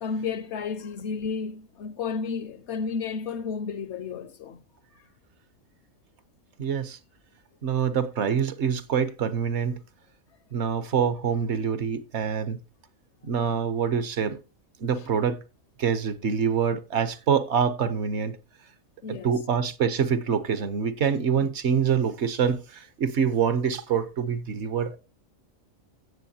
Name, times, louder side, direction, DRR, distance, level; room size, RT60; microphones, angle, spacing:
voice 1, 0.0-4.6 15.0-15.1 19.0-19.4 21.4-21.5, left 5 dB, 65° left, 0.8 m, -32 dB
voice 2, 6.6-7.0 7.6-9.8 10.5-12.6 13.2-14.4 14.8-15.4 15.8-18.4 19.1-25.0, right 7 dB, 60° right, 1.0 m, -25 dB
16.0 x 7.0 x 2.8 m
omnidirectional pair, 1.4 m